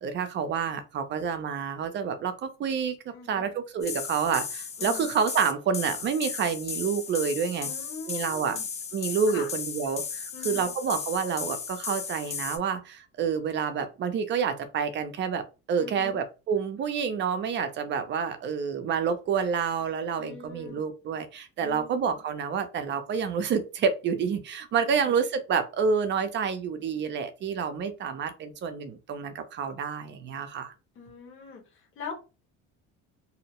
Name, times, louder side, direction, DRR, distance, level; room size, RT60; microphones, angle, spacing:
voice 1, 0.0-3.0 3.3-7.7 8.1-8.6 8.9-30.7, right 6 dB, 40° right, 9 dB, 0.5 m, -28 dB
voice 2, 3.1-3.5 4.8-5.1 7.6-8.7 9.3-9.5 10.3-10.7 15.8-16.2 20.2-20.8 21.6-22.1 24.7-25.1 30.9-32.1, left 5 dB, 45° left, 0 dB, 1.1 m, -43 dB
sound 1, 3.8-12.6, left 6 dB, 20° left, 0.4 m, -35 dB
2.6 x 2.0 x 2.9 m, 0.30 s
cardioid pair, 135°, 30 cm